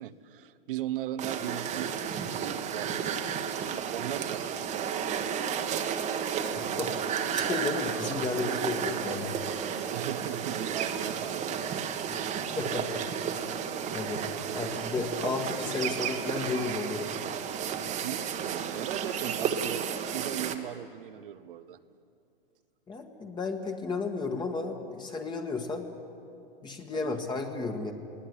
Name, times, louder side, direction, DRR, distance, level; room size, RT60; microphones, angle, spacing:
voice 1, 0.0-5.5 9.9-11.8 12.2-12.4 17.8-21.8 26.9-27.3, right 11 dB, 65° right, 14 dB, 1.2 m, -38 dB
sound 1, 1.2-20.6, right 8 dB, 25° right, 1.5 m, -32 dB
voice 2, 6.5-9.4 12.1-12.2 12.6-13.3 13.9-14.2 14.5-17.1 22.9-25.9 26.6-27.9, left 3 dB, 15° left, 3 dB, 1.7 m, -33 dB
20.5 x 17.5 x 9.8 m, 2.6 s
hypercardioid pair, 125°, 30 cm